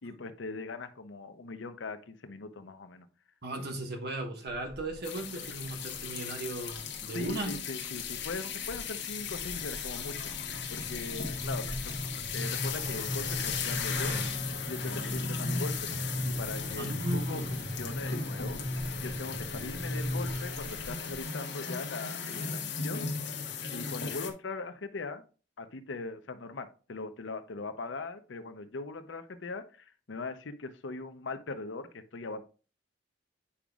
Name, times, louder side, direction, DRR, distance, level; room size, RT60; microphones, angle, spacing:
voice 1, 0.0-3.1 7.1-10.3 10.7-15.9 16.2-18.6 19.0-23.0 23.7-25.2 25.6-29.6 30.1-32.4, left 3 dB, 90° left, 9 dB, 0.7 m, -40 dB
voice 2, 3.4-7.5 16.8-17.5, right 1 dB, 60° right, 4 dB, 1.4 m, -36 dB
sound 1, 4.5-5.0 5.5-6.1 6.7-7.6 8.0-8.3 8.6-21.2, equal, 15° right, 1.1 m, -37 dB
sound 2, 5.0-24.3, left 6 dB, 70° left, 1.0 m, -37 dB
8.6 x 5.0 x 2.4 m, 0.36 s
head